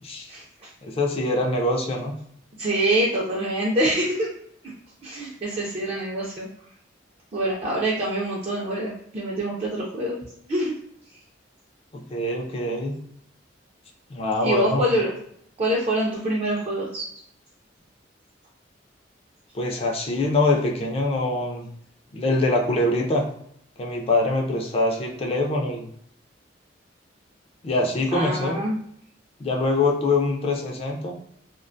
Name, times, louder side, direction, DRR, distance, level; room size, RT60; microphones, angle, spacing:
voice 1, 0.3-0.7 2.6-4.3 5.0-6.5 7.3-10.2 10.5-10.8 14.4-15.1 15.6-17.1 28.1-28.8, right 1 dB, 35° right, -4 dB, 0.4 m, -25 dB
voice 2, 0.8-2.1 11.9-12.9 14.1-14.9 19.5-21.7 22.1-23.3 23.8-25.9 27.6-28.6 29.4-31.2, left 2 dB, 30° left, 1 dB, 0.4 m, -24 dB
2.4 x 2.2 x 2.5 m, 0.69 s
head